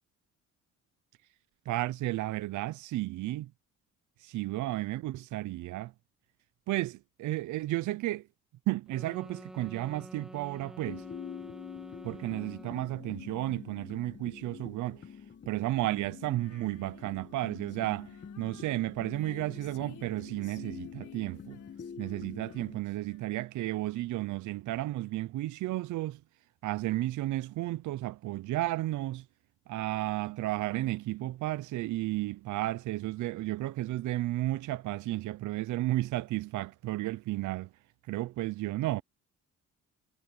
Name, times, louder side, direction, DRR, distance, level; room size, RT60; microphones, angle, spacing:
voice 1, 1.7-3.5 4.2-5.9 6.7-8.2 8.7-11.0 12.0-15.0 15.5-21.6 22.0-26.2 26.6-29.2 29.7-37.7 38.1-39.0, right 16 dB, 75° right, 0.6 m, -33 dB
sound 1, 8.9-13.1, equal, ahead, 1.0 m, -49 dB
sound 2, 10.8-22.8, left 7 dB, 40° left, 1.3 m, -46 dB
Female singing, 16.3-23.7, left 12 dB, 80° left, 4.7 m, -59 dB
cardioid pair, 90°, 30 cm